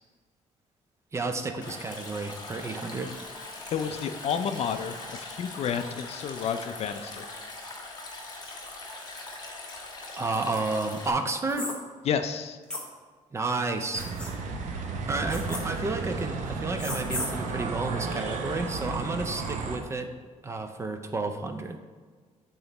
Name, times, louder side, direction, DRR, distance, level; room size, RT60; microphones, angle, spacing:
voice 1, 1.1-3.1 10.2-11.7 13.3-14.1 15.1-20.1 20.4-21.8, right 3 dB, 20° right, 7 dB, 0.4 m, -31 dB
Stream, 1.6-11.1, left 2 dB, 30° left, 1.1 m, -41 dB
voice 2, 3.7-7.3 12.0-12.6, left 7 dB, 55° left, 9 dB, 0.4 m, -30 dB
sound 1, 11.5-11.7 12.7-12.8 13.9-14.3 15.3-15.6 16.8-17.3, left 1 dB, 5° left, 0.9 m, -34 dB
sound 2, 13.9-19.8, right 4 dB, 70° right, 0.8 m, -33 dB
7.8 x 3.9 x 4.0 m, 1.5 s
cardioid pair, 165°, 13 cm